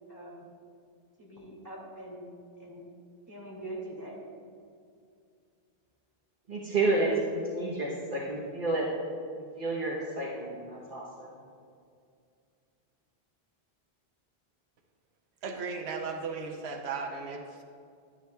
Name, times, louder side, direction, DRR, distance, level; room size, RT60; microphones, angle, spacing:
voice 1, 0.1-0.5 1.2-2.3 2.6-2.8 3.3-4.2, right 1 dB, 15° right, -5 dB, 2.2 m, -43 dB
voice 2, 6.5-8.9 9.4-11.3, right 2 dB, 55° right, -5 dB, 1.1 m, -30 dB
voice 3, 15.4-17.6, right 4 dB, 90° right, 4 dB, 1.0 m, -36 dB
11.0 x 9.8 x 2.3 m, 2.3 s
omnidirectional pair, 1.0 m